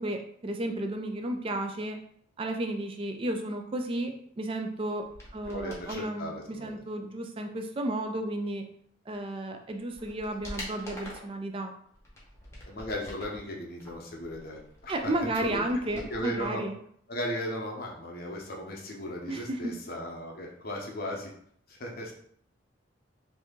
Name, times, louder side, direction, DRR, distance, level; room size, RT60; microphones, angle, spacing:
voice 1, 0.0-2.0 2.4-5.1 5.3-8.7 9.1-11.7 14.9-16.7 19.3-19.7, right 1 dB, 30° right, 5 dB, 0.3 m, -33 dB
sound 1, 5.0-6.0 9.1-9.2 9.7-11.4 11.9-13.4 13.8-16.5 16.7-16.8, left 1 dB, 15° left, 0.8 m, -45 dB
voice 2, 5.5-6.8 12.7-14.9 15.4-16.6 17.1-21.3 21.7-22.1, equal, 50° left, -1 dB, 0.7 m, -37 dB
2.8 x 2.6 x 3.5 m, 0.64 s
head